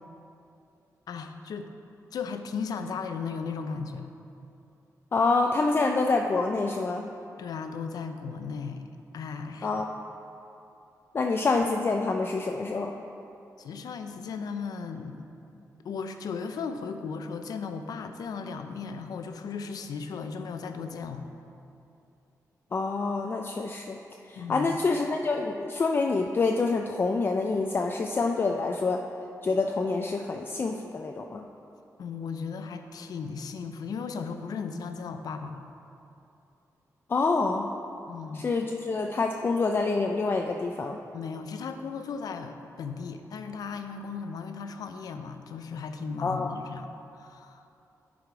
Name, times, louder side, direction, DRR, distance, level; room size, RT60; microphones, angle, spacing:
voice 1, 1.1-1.7 2.1-4.1 7.4-8.9 9.1-9.7 13.6-15.3 15.8-21.3 24.4-24.7 32.0-35.7 38.1-38.5 41.1-47.6, left 5 dB, 85° left, 7 dB, 0.5 m, -36 dB
voice 2, 5.1-7.1 9.6-9.9 11.1-12.9 22.7-24.0 24.3-29.0 29.4-31.5 37.1-37.7 38.3-41.0 46.2-46.5, left 3 dB, 35° left, 3 dB, 0.4 m, -27 dB
11.0 x 4.9 x 4.7 m, 2.7 s
wide cardioid pair, 125°, 6 cm